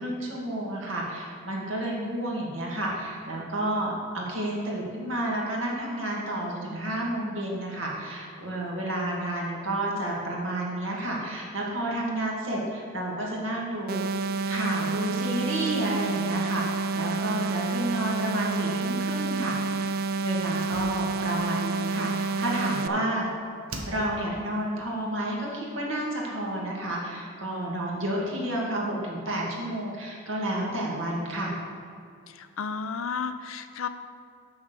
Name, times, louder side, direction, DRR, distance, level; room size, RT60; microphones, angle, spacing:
voice 1, 0.0-14.0 14.5-19.9 20.2-23.2 23.9-31.5, right 1 dB, 65° right, -3 dB, 2.1 m, -30 dB
sound 1, 13.9-22.9, right 4 dB, 45° right, 0.4 m, -29 dB
Slam, 20.5-23.2 23.7-24.4 24.7-24.8, right 2 dB, 80° right, 1.1 m, -42 dB
voice 2, 32.4-33.9, left 5 dB, 75° left, 10 dB, 0.5 m, -32 dB
7.1 x 6.5 x 6.7 m, 2.4 s
head